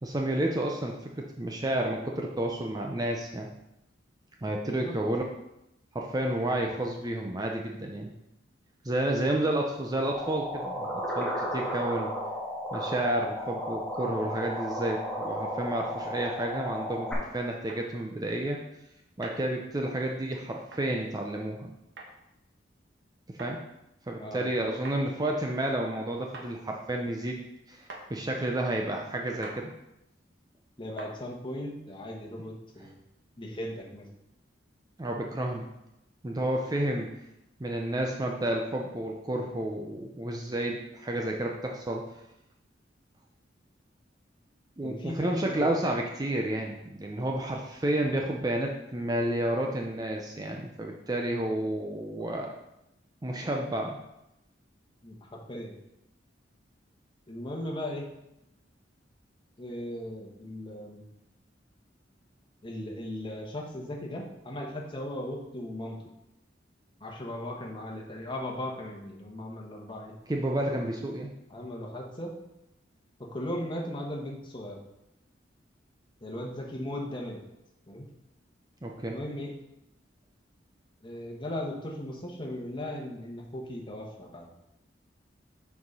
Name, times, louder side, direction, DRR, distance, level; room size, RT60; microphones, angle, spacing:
voice 1, 0.0-3.5 4.4-5.2 5.9-8.1 8.8-12.1 12.7-18.6 19.2-21.7 23.3-23.6 24.1-27.4 27.7-29.7 32.8-32.9 35.0-35.7 36.2-37.1 37.6-42.1 44.8-52.5 53.2-54.0 70.3-71.3 78.8-79.2, right 1 dB, 20° right, 1 dB, 0.6 m, -31 dB
voice 2, 4.6-5.0 24.2-24.5 30.8-33.0 33.4-34.0 44.8-45.8 55.0-55.7 57.3-58.1 59.6-61.1 62.6-66.0 67.0-70.1 70.7-70.8 71.5-72.3 73.2-74.8 76.2-77.4 77.9-78.1 79.1-79.5 81.0-84.5, left 1 dB, 25° left, -1 dB, 1.3 m, -37 dB
sound 1, 10.1-17.1, equal, 5° left, 1.6 m, -34 dB
sound 2, 17.7-17.8 19.2-19.4 20.7-20.9 22.0-22.1 23.4-23.5 24.8-25.0 26.3-26.5 27.9-28.1 29.4-29.6 31.0-31.2, right 2 dB, 65° right, 1.3 m, -43 dB
6.3 x 4.8 x 5.4 m, 0.87 s
head